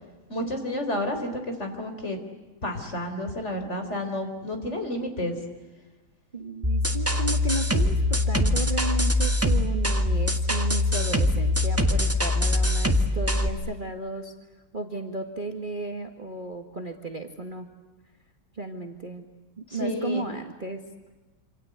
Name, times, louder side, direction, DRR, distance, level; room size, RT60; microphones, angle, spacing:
voice 1, 0.3-2.2 2.6-5.4 19.8-20.2, left 1 dB, 35° left, 5 dB, 4.4 m, -30 dB
voice 2, 6.3-14.3 14.7-17.7 18.5-19.3 19.7-20.8, right 2 dB, 25° right, 4 dB, 1.9 m, -34 dB
sound 1, 6.6-13.5, left 1 dB, 10° right, 1.5 m, -23 dB
27.0 x 27.0 x 8.1 m, 1.2 s
omnidirectional pair, 2.1 m